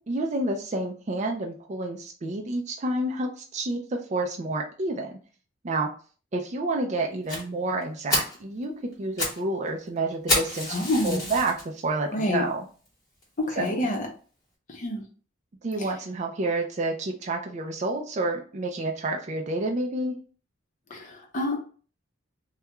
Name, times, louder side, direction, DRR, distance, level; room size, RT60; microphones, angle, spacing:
voice 1, 0.1-5.2 5.6-5.9 6.3-8.7 9.0-12.7 13.6-13.9 15.6-20.2, right 2 dB, 35° right, 2 dB, 0.4 m, -29 dB
Fire, 7.3-7.4 7.8-7.9 8.1-8.4 8.9-9.4 9.7-9.8 10.3-11.6 12.2-12.3 12.9-13.0 13.2-13.3 13.7-13.8, left 1 dB, 20° left, 1.1 m, -28 dB
voice 2, 10.7-11.3 12.1-12.4 13.4-14.1 14.7-15.0 20.9-21.6, left 1 dB, 40° left, 1 dB, 0.7 m, -27 dB
2.3 x 2.2 x 2.9 m, 0.39 s
head